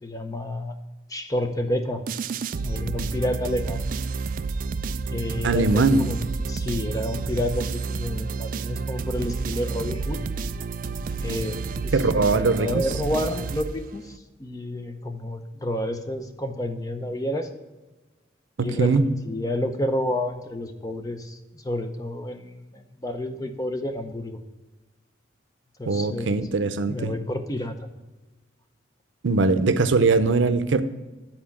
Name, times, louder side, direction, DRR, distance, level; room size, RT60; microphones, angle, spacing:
voice 1, 0.0-0.8 1.1-2.0 2.6-3.8 5.1-6.2 6.5-10.2 11.2-17.5 18.6-24.4 25.8-26.5 26.9-27.8, left 1 dB, 20° left, 7 dB, 0.7 m, -30 dB
sound 1, 2.1-14.2, right 4 dB, 45° right, 0.3 m, -30 dB
voice 2, 5.4-6.1 11.9-12.9 18.6-19.1 25.9-27.1 29.2-30.8, right 3 dB, 85° right, 11 dB, 0.6 m, -21 dB
9.8 x 4.3 x 7.1 m, 1.2 s
head